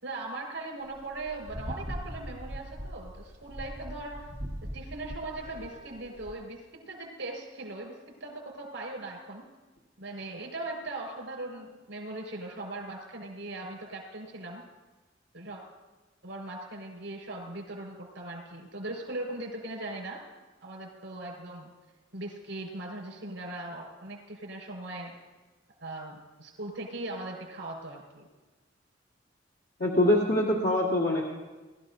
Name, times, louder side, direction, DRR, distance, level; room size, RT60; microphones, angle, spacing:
voice 1, 0.0-4.3 4.7-9.4 10.0-14.6 15.3-15.6 16.2-20.2 20.6-21.7 22.1-25.1 25.8-28.3, right 2 dB, 80° right, -1 dB, 4.9 m, -39 dB
sound 1, 0.9-6.3, equal, 35° right, 1.8 m, -41 dB
voice 2, 29.8-31.2, left 1 dB, 75° left, -4 dB, 1.8 m, -24 dB
22.0 x 13.5 x 2.7 m, 1.2 s
head